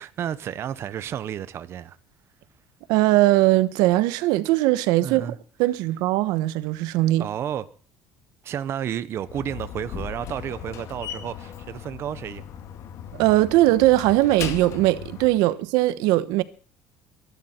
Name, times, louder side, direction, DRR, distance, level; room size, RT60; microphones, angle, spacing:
voice 1, 0.0-2.0 5.0-5.4 7.1-7.7 8.4-12.5, right 9 dB, 40° right, 0.8 m, -31 dB
voice 2, 2.9-7.2 13.1-16.4, right 17 dB, 80° right, 1.1 m, -20 dB
Slam, 9.2-15.4, left 8 dB, 50° left, 2.1 m, -37 dB
23.0 x 11.5 x 4.4 m
cardioid pair, 150°, 7 cm